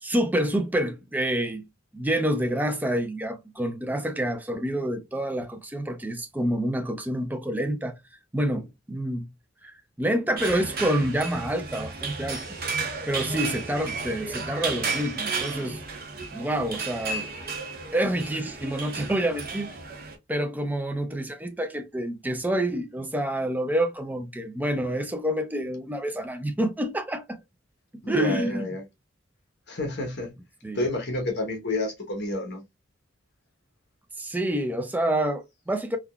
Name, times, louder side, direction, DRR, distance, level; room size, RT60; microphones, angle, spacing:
voice 1, 0.0-1.6 1.9-7.9 8.3-9.3 9.6-12.6 13.1-15.8 16.3-17.3 17.9-19.8 20.3-27.4 27.9-28.7 30.6-30.9 34.2-36.0, right 1 dB, 10° right, 0.4 m, -28 dB
sound 1, 10.4-20.1, right 4 dB, 50° right, 0.8 m, -33 dB
voice 2, 28.0-28.8 29.7-30.3 30.7-32.6, left 2 dB, 60° left, 1.0 m, -29 dB
3.5 x 2.3 x 2.2 m
head